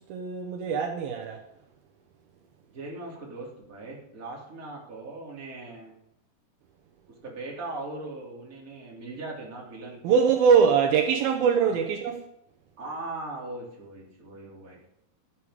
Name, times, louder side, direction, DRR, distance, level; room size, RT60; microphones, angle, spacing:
voice 1, 0.0-1.4 10.0-12.2, right 6 dB, 75° right, 2.6 m, -22 dB
voice 2, 2.7-5.9 7.2-10.2 11.6-11.7 12.8-14.8, right 2 dB, 25° right, 2.9 m, -39 dB
13.5 x 8.6 x 5.0 m
omnidirectional pair, 4.6 m